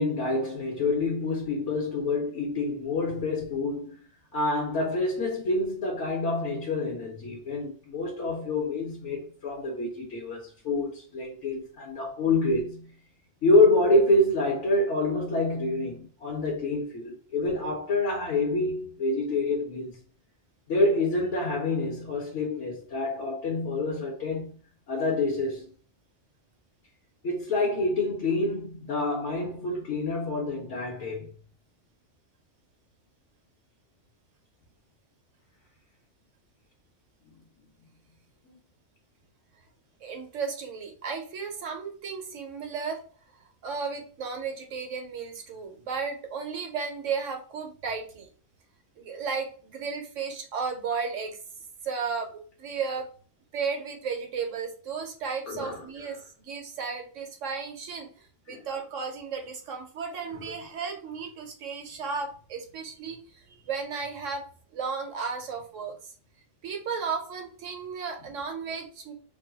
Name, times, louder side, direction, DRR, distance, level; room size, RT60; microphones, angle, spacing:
voice 1, 0.0-4.0 4.3-12.9 13.4-20.0 20.7-24.6 24.9-25.7 27.2-31.3 38.4-38.6 55.5-55.8 58.5-58.7, left 2 dB, 70° left, 1.5 m, -27 dB
voice 2, 40.0-43.0 43.6-48.3 49.0-51.4 51.8-53.1 53.5-58.1 58.5-64.4 64.7-66.1 66.6-69.1, right 5 dB, 85° right, 1.2 m, -34 dB
3.4 x 2.3 x 4.0 m
omnidirectional pair, 1.2 m